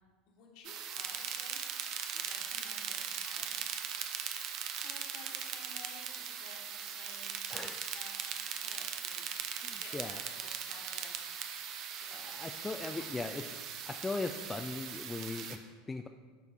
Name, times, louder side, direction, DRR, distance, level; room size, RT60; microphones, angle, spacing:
voice 1, 0.3-1.6 2.1-3.6 4.8-7.4 7.9-8.2 8.5-9.3 9.6-11.2 12.0-13.1, left 4 dB, 50° left, -1 dB, 1.5 m, -54 dB
sound 1, 0.6-15.6, right 8 dB, 45° right, 0.6 m, -40 dB
voice 2, 7.5-7.8 9.6-10.2 12.1-13.6 13.9-16.1, left 3 dB, 15° left, 5 dB, 0.4 m, -39 dB
11.0 x 4.6 x 3.6 m, 1.4 s
figure-of-eight pair, 75°, 0 cm